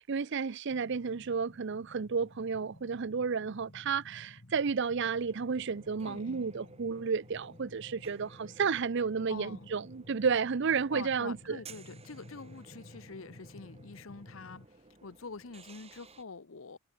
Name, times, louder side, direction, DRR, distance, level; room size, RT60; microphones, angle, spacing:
voice 1, 0.0-11.6, right 5 dB, 60° right, 0.6 m, -32 dB
sound 1, 0.7-14.7, left 1 dB, 50° left, 1.6 m, -54 dB
sound 2, 5.1-16.2, right 4 dB, 30° right, 2.5 m, -56 dB
voice 2, 6.0-6.5 9.3-9.7 10.9-14.6 15.0-16.8, left 4 dB, 70° left, 0.9 m, -46 dB
head